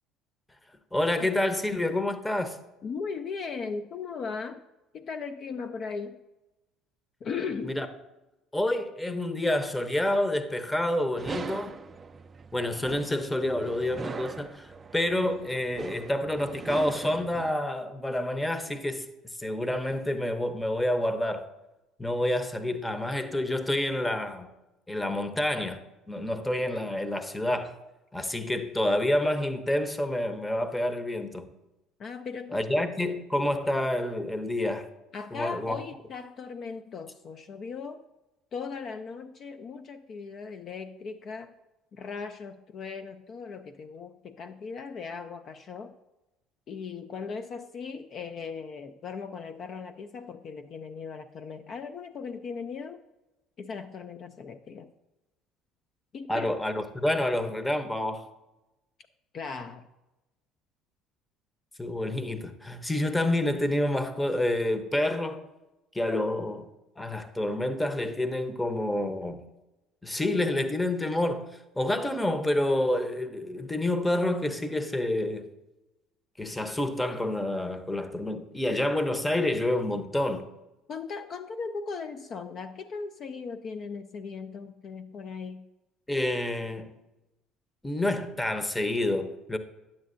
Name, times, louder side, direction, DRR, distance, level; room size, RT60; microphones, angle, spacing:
voice 1, 0.9-2.6 7.6-7.9 8.5-11.7 12.5-19.1 19.4-21.5 22.0-24.5 24.9-27.8 28.1-31.5 32.5-34.9 35.3-35.8 56.3-58.3 61.8-65.5 65.9-66.7 67.0-69.4 70.0-71.5 71.8-75.5 76.4-80.5 86.1-86.9 87.8-89.6, left 1 dB, 10° left, 0.7 m, -28 dB
voice 2, 2.8-4.6 4.9-6.2 7.2-7.8 32.0-32.8 35.1-38.0 38.5-41.5 41.9-45.9 46.7-53.0 53.6-54.9 56.1-56.5 59.3-59.9 80.9-85.7, left 5 dB, 50° left, 0.4 m, -38 dB
sound 1, 11.2-17.5, right 5 dB, 30° right, 0.3 m, -40 dB
9.1 x 7.5 x 2.5 m
hypercardioid pair, 70°, 0 cm